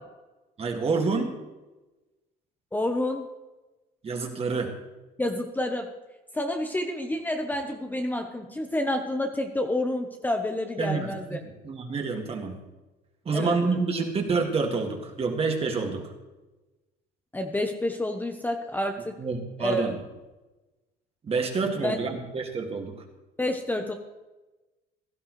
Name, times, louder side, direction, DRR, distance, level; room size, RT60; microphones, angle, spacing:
voice 1, 0.6-1.4 4.0-4.7 10.8-12.6 13.3-16.1 19.2-20.0 21.2-22.9, right 4 dB, 35° right, 3 dB, 2.1 m, -28 dB
voice 2, 2.7-3.3 5.2-5.9 6.3-11.4 13.3-13.8 17.3-19.2 19.6-20.0 21.8-22.0 23.4-23.9, left 1 dB, 10° left, 4 dB, 0.9 m, -29 dB
16.5 x 12.0 x 3.2 m, 1.1 s
cardioid pair, 110°, 17 cm